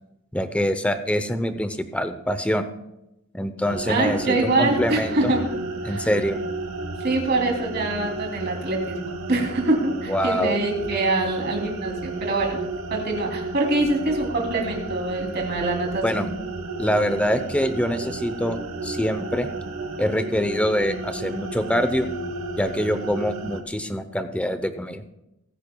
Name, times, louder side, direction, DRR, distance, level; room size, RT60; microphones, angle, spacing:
voice 1, 0.3-2.6 3.3-5.3 5.8-6.4 10.1-10.6 16.0-16.3 16.8-19.5 20.0-22.1 22.6-25.0, equal, 5° left, 10 dB, 0.6 m, -24 dB
sound 1, 3.6-23.6, right 2 dB, 90° right, 1.1 m, -33 dB
voice 2, 3.9-5.4 5.8-6.1 7.0-12.6 12.9-16.3, right 2 dB, 50° right, 0 dB, 2.9 m, -24 dB
21.5 x 10.0 x 2.3 m, 0.90 s
head